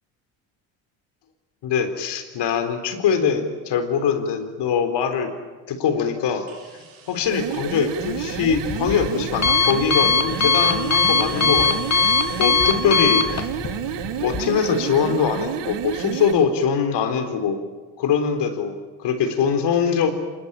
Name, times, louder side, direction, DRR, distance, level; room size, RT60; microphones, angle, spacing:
voice 1, 1.6-5.3 5.7-6.5 6.7-11.9 12.4-13.5 14.2-17.6 18.0-20.1, left 6 dB, 60° left, 8 dB, 3.9 m, -22 dB
sound 1, 6.5-16.1, right 6 dB, 85° right, 7.1 m, -47 dB
sound 2, 7.2-16.4, right 10 dB, 60° right, 2.0 m, -30 dB
Alarm, 8.0-14.4, left 5 dB, 35° left, 2.2 m, -22 dB
26.0 x 21.0 x 8.9 m, 1.4 s
supercardioid pair, 95°, 47 cm